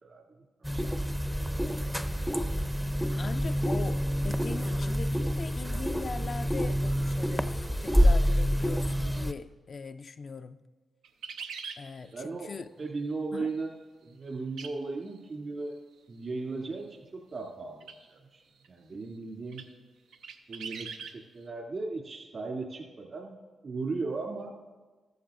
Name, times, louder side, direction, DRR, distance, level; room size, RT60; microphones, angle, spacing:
voice 1, 0.0-2.0 3.1-3.3 12.1-12.5 12.8-13.7 14.0-15.8 16.1-18.4 18.7-19.6 20.5-23.4 23.6-24.5, right 3 dB, 60° right, 1 dB, 2.4 m, -37 dB
sound 1, 0.6-9.3, equal, ahead, 0.6 m, -27 dB
voice 2, 3.2-10.6 11.8-12.7 13.3-13.5, left 5 dB, 55° left, 10 dB, 0.4 m, -41 dB
sound 2, 11.0-11.8 14.6-14.7 15.1-15.2 17.8-18.0 18.6-18.7 19.5-19.7 20.1-21.2, right 6 dB, 85° right, 0.6 m, -40 dB
14.0 x 13.5 x 2.5 m, 1.3 s
supercardioid pair, 45°, 0 cm